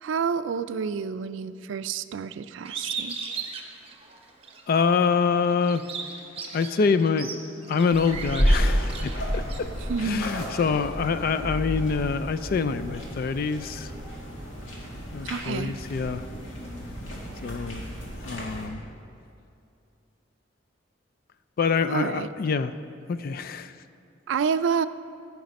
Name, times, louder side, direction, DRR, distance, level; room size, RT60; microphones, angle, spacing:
voice 1, 0.0-3.2 9.9-10.2 15.2-15.7 21.9-22.3 24.3-24.9, right 6 dB, 75° right, 13 dB, 0.4 m, -28 dB
Bird, 2.6-4.6 5.1-9.6, right 5 dB, 30° right, 1.0 m, -37 dB
voice 2, 4.7-5.8 6.5-9.7 10.0-13.9 15.1-16.3 17.4-17.9 18.2-18.8 21.6-22.7 23.1-23.7, left 5 dB, 50° left, 11 dB, 0.4 m, -26 dB
sound 1, 7.9-18.7, equal, 90° left, 1.9 m, -30 dB
14.5 x 5.9 x 5.2 m, 2.5 s
head